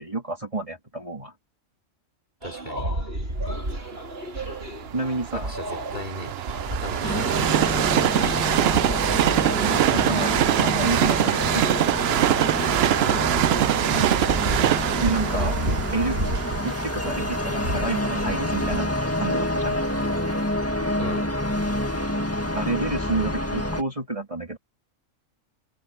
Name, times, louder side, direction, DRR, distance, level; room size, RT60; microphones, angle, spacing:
voice 1, 0.0-1.3 4.9-5.5 9.6-11.9 15.0-15.6 15.9-16.2 16.6-18.9 19.2-19.8 22.5-24.6, right 2 dB, 25° right, 2.9 m, -29 dB
voice 2, 2.4-2.9 5.3-7.7 8.0-8.5 13.0-13.4 21.0-21.3, left 1 dB, 35° left, 3.6 m, -37 dB
sound 1, 2.4-18.8, right 1 dB, 50° right, 4.6 m, -33 dB
Train, 3.7-19.7 20.3-20.4, right 12 dB, 65° right, 0.7 m, -24 dB
sound 2, 7.0-23.8, left 1 dB, 10° left, 1.8 m, -28 dB
omnidirectional pair, 1.4 m